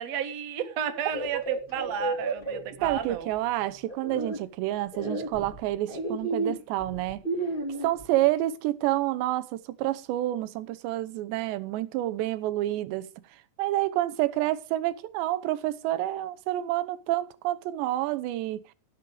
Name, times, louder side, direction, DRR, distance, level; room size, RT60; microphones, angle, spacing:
voice 1, 0.0-3.3, right 8 dB, 50° right, 2.2 m, -32 dB
sound 1, 1.1-3.4 3.9-4.4 4.9-8.1, right 2 dB, 15° left, 1.7 m, -32 dB
voice 2, 2.8-7.2 7.8-13.1 13.6-18.6, right 15 dB, 85° right, 3.1 m, -28 dB
16.5 x 7.5 x 4.9 m
omnidirectional pair, 5.0 m